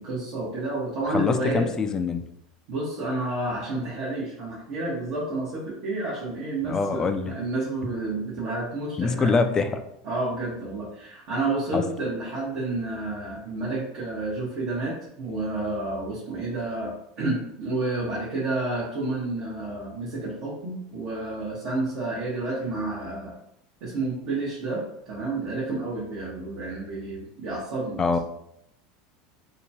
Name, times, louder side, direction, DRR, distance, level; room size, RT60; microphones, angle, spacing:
voice 1, 0.0-1.7 2.7-9.4 10.0-23.3 23.8-28.0, right 2 dB, 60° right, -7 dB, 0.9 m, -30 dB
voice 2, 1.1-2.2 6.6-7.3 9.0-9.7 11.7-11.8 28.0-28.2, left 4 dB, 25° left, 7 dB, 0.3 m, -24 dB
2.8 x 2.2 x 2.7 m, 0.76 s
supercardioid pair, 105°, 2 cm